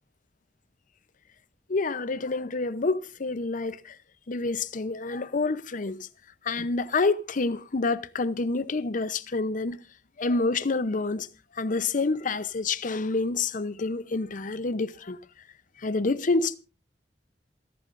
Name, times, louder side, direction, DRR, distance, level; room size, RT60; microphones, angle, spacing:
voice 1, 1.7-3.9 4.3-6.1 6.4-9.8 10.2-11.3 11.6-15.2 15.8-16.6, left 3 dB, 50° left, 0.7 m, -28 dB
27.0 x 11.5 x 2.6 m
head